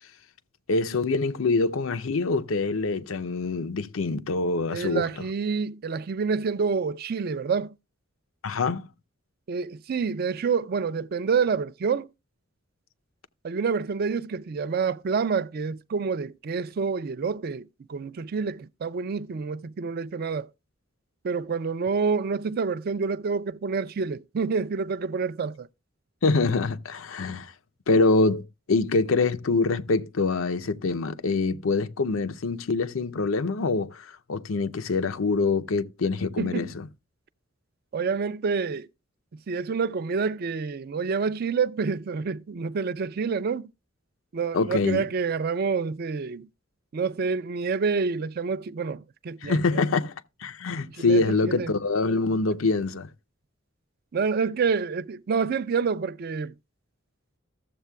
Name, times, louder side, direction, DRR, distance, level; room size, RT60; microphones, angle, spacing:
voice 1, 0.7-5.1 8.4-8.9 26.2-27.5 27.9-36.9 44.5-45.1 49.4-50.1 50.4-53.1, left 3 dB, 90° left, 0.6 m, -25 dB
voice 2, 4.7-7.7 9.5-12.1 13.4-20.5 21.2-25.7 36.4-36.7 37.9-38.9 39.5-43.7 44.3-46.5 46.9-49.8 50.9-51.7 54.1-56.5, right 5 dB, 50° right, 0.4 m, -28 dB
14.5 x 7.4 x 2.2 m
head